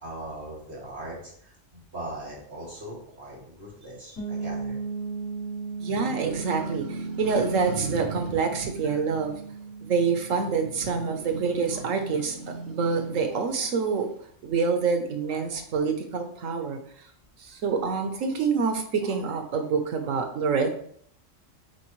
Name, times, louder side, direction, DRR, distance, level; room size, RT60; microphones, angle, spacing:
voice 1, 0.0-4.8 8.9-9.0 11.0-11.1 17.5-17.6, right 1 dB, 55° right, -5 dB, 2.5 m, -40 dB
sound 1, 4.2-13.8, right 4 dB, 80° left, 3.2 m, -38 dB
voice 2, 5.8-9.3 9.8-14.1 14.4-16.8 17.4-20.7, right 5 dB, 85° right, 6 dB, 1.3 m, -26 dB
7.4 x 4.2 x 3.1 m, 0.63 s
omnidirectional pair, 1.3 m